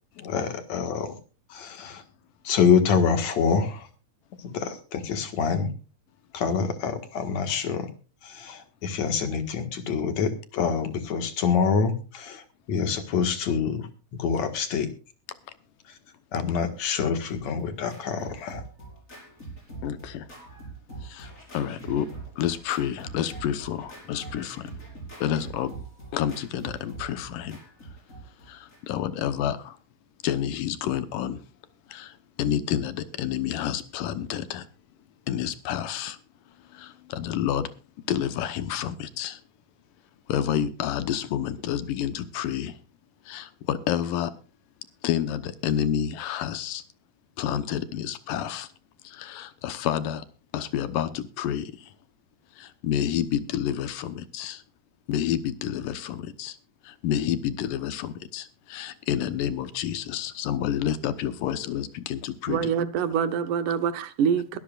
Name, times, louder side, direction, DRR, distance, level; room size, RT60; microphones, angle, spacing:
voice 1, 0.2-1.2 1.5-2.0 2.4-3.9 4.4-5.7 6.3-7.9 8.2-14.9 15.8-16.0 16.3-18.6, left 6 dB, 60° left, 2.6 m, -26 dB
Scratching (performance technique), 17.0-29.1, right 3 dB, 20° left, 5.7 m, -43 dB
voice 2, 19.8-20.3 21.0-22.1 22.4-24.7 25.2-25.7 26.1-27.6 28.4-29.8 30.2-31.4 31.9-34.7 35.3-36.2 36.7-37.7 38.1-39.4 40.3-42.8 43.3-44.3 45.0-46.8 47.4-48.7 49.0-50.2 50.5-51.9 52.6-54.6 55.1-56.6 56.8-62.7, left 10 dB, 80° left, 2.6 m, -29 dB
voice 3, 62.5-64.6, right 7 dB, 75° right, 2.4 m, -25 dB
22.0 x 12.5 x 2.4 m
omnidirectional pair, 3.9 m